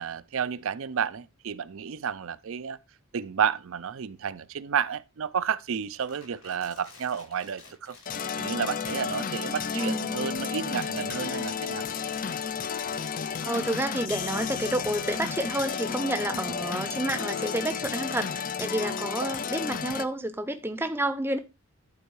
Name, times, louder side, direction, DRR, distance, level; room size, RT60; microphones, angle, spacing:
voice 1, 0.0-2.8 3.1-8.0 8.4-11.8 19.2-19.3, right 7 dB, 65° right, 0.5 m, -31 dB
Crumpling crinkling, 5.7-15.8, left 4 dB, 85° left, 4.9 m, -52 dB
sound 1, 8.1-20.0, left 6 dB, 35° left, 0.4 m, -32 dB
voice 2, 9.7-10.3 13.4-21.4, right 1 dB, 10° right, 0.6 m, -30 dB
11.0 x 4.5 x 4.7 m
head